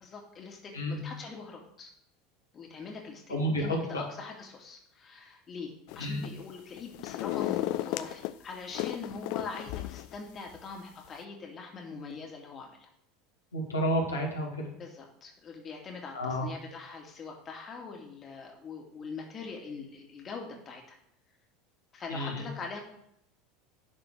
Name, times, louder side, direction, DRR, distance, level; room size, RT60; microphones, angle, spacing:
voice 1, 0.0-1.9 2.5-12.9 14.7-21.0 21.9-22.8, left 4 dB, 30° left, 0 dB, 2.3 m, -43 dB
voice 2, 3.3-4.0 6.0-6.2 13.5-14.6 16.1-16.5 22.1-22.5, equal, 85° left, -2 dB, 2.2 m, -30 dB
sound 1, 5.9-6.4 6.8-8.3 8.7-10.2 10.5-10.6, left 16 dB, 55° left, 0.4 m, -34 dB
11.5 x 4.3 x 6.4 m, 0.73 s
figure-of-eight pair, 75°, 0 cm